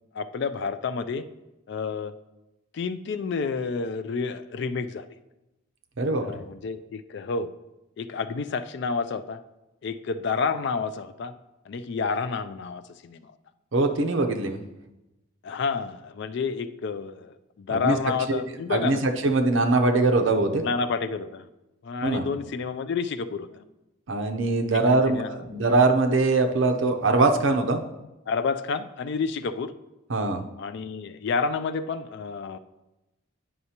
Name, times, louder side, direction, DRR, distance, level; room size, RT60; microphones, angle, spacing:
voice 1, 0.1-1.3 1.7-2.1 2.7-5.1 6.2-7.5 8.0-9.4 9.8-11.3 11.7-13.3 15.4-19.0 20.6-21.5 21.8-23.5 24.7-25.3 28.3-29.7 30.6-32.6, left 5 dB, 55° left, 11 dB, 0.3 m, -29 dB
voice 2, 13.7-14.6 17.7-18.0 18.3-18.4 18.7-20.6 22.0-22.3 24.1-27.8 30.1-30.4, right 3 dB, 65° right, 4 dB, 0.7 m, -22 dB
9.4 x 5.5 x 2.9 m, 0.97 s
head